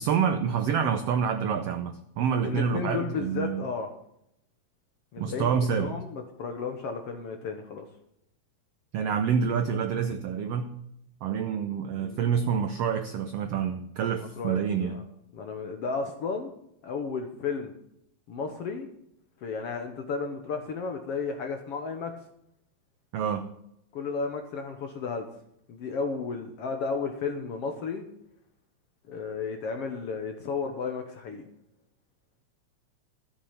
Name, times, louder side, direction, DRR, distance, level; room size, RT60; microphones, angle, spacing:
voice 1, 0.0-3.6 5.2-5.9 8.9-10.7 11.2-14.9 23.1-23.4, right 7 dB, 90° right, 7 dB, 1.3 m, -27 dB
voice 2, 2.4-3.9 5.1-7.9 12.0-12.3 14.1-15.0 15.3-16.5 16.8-17.7 18.3-18.9 19.4-22.1 23.9-25.3 25.7-28.0 29.1-31.5, left 5 dB, 65° left, 5 dB, 1.6 m, -33 dB
13.5 x 8.7 x 5.7 m, 0.77 s
omnidirectional pair, 3.9 m